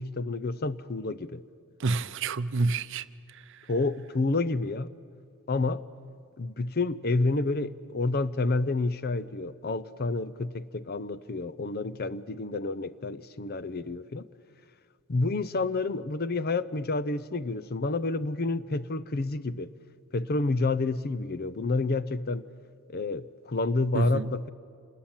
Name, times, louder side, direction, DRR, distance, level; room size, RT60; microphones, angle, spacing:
voice 1, 0.0-1.4 3.7-4.9 5.5-5.8 6.4-14.3 15.1-19.7 20.1-22.4 22.9-24.5, left 3 dB, 45° left, 0.6 m, -29 dB
voice 2, 1.8-3.7 23.9-24.3, right 3 dB, 60° right, 0.6 m, -29 dB
27.0 x 20.5 x 8.9 m
head